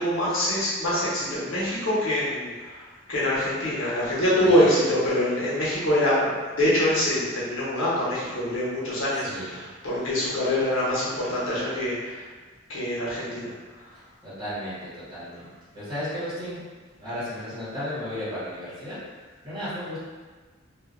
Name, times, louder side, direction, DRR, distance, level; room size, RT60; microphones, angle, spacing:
voice 1, 0.0-2.5 3.1-12.2 12.7-13.5, left 1 dB, 80° left, -9 dB, 1.0 m, -24 dB
voice 2, 4.4-4.8 9.1-9.6 14.2-15.5 15.7-16.6 17.0-19.0 19.4-20.0, equal, 20° right, -13 dB, 1.4 m, -34 dB
2.6 x 2.5 x 2.5 m, 1.4 s
head